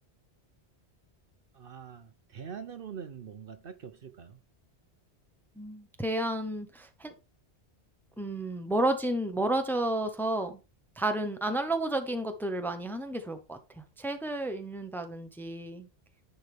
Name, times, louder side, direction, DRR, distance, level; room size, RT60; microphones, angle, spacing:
voice 1, 1.5-4.4, right 7 dB, 60° right, 0.9 m, -44 dB
voice 2, 5.6-7.1 8.2-10.6 11.0-15.9, right 1 dB, ahead, 0.8 m, -31 dB
10.5 x 4.7 x 3.4 m
omnidirectional pair, 1.1 m